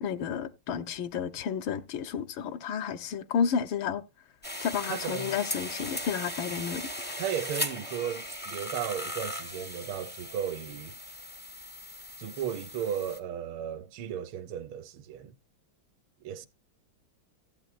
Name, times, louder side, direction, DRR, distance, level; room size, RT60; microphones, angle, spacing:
voice 1, 0.0-4.0 4.6-6.9, left 7 dB, 75° left, 1.5 m, -31 dB
sound 1, 4.4-13.2, left 1 dB, 15° left, 0.4 m, -38 dB
voice 2, 4.9-5.4 7.2-11.0 12.2-15.3 16.2-16.5, right 9 dB, 85° right, 1.6 m, -35 dB
14.0 x 8.5 x 2.5 m
omnidirectional pair, 2.2 m